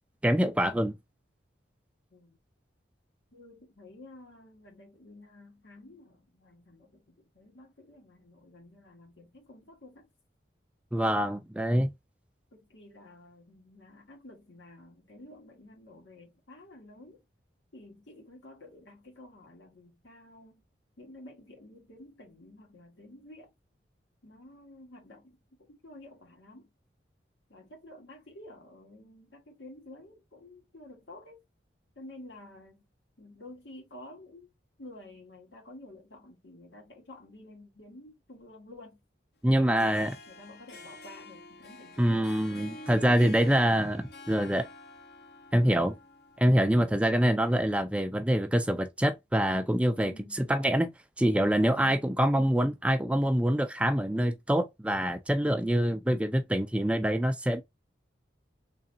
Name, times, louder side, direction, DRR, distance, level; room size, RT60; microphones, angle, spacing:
voice 1, 0.2-1.0 10.9-11.9 39.4-40.1 42.0-44.7 45.5-45.9 46.4-50.9 51.2-57.6, equal, 5° right, 0.3 m, -25 dB
voice 2, 3.3-10.1 12.5-17.2 17.7-20.6 21.0-23.5 24.2-25.4 25.7-26.7 27.5-31.4 31.9-32.9 33.2-34.5 34.8-39.0 39.6-43.8 50.0-50.4, left 1 dB, 85° left, 1.7 m, -51 dB
Harp, 39.6-46.9, left 2 dB, 60° left, 0.8 m, -49 dB
3.8 x 3.3 x 2.6 m
head